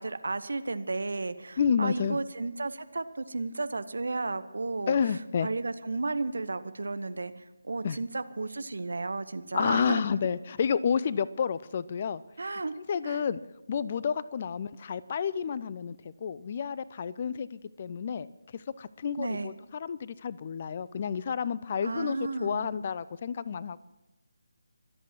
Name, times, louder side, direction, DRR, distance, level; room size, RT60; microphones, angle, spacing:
voice 1, 0.0-10.0 12.4-12.7 13.0-13.2 19.2-19.5 21.8-22.7, right 3 dB, 55° right, 13 dB, 1.0 m, -33 dB
voice 2, 1.6-2.2 4.9-5.5 7.8-8.0 9.5-12.2 12.9-13.4 13.7-16.0 16.2-18.3 18.5-23.8, left 7 dB, 30° left, 18 dB, 0.5 m, -30 dB
24.5 x 8.3 x 6.1 m, 1.0 s
figure-of-eight pair, 155°, 0 cm